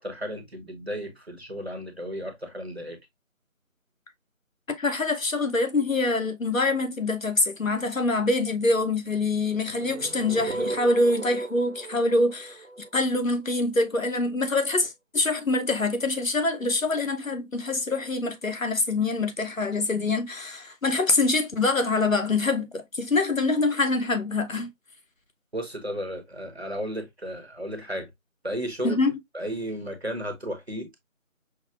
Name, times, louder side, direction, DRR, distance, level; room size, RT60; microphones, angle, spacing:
voice 1, 0.0-3.0 25.5-28.1 28.4-29.0 29.3-30.9, equal, 50° right, 1.0 m, -34 dB
voice 2, 4.7-12.6 12.9-24.7 28.8-29.1, left 2 dB, 75° left, 0.9 m, -25 dB
sound 1, 9.5-13.6, right 3 dB, 70° right, 0.6 m, -35 dB
5.7 x 2.2 x 2.4 m
figure-of-eight pair, 175°, 40 cm